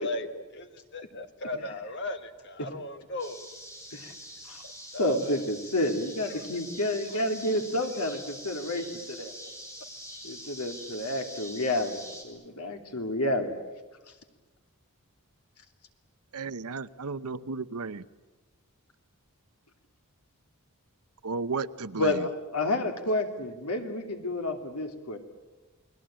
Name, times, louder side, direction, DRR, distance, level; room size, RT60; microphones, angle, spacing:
voice 1, 0.0-3.5 4.6-5.4 6.2-6.5 6.8-7.3, left 1 dB, 50° left, 8 dB, 1.9 m, -37 dB
sound 1, 3.2-12.2, equal, 15° left, 4.8 m, -44 dB
voice 2, 5.0-9.4 10.2-13.6 22.0-25.2, left 1 dB, 85° left, 5 dB, 3.0 m, -30 dB
voice 3, 16.3-18.0 21.2-22.3, right 4 dB, 85° right, 14 dB, 0.9 m, -34 dB
29.5 x 20.5 x 9.0 m, 1.2 s
head